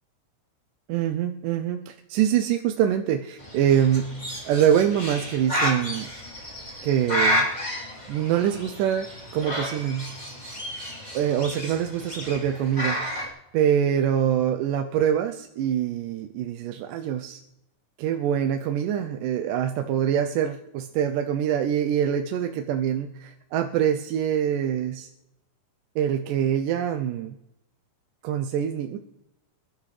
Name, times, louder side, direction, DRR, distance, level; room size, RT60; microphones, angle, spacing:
voice 1, 0.9-4.2 4.5-6.1 6.8-7.5 8.1-9.1 9.3-10.2 11.1-13.0 13.5-17.4 18.0-25.1 26.0-27.4 28.2-29.0, right 9 dB, 80° right, 5 dB, 2.2 m, -24 dB
Bird, 3.4-13.3, equal, 15° left, 2.9 m, -31 dB
27.0 x 12.0 x 3.3 m, 0.88 s
omnidirectional pair, 3.8 m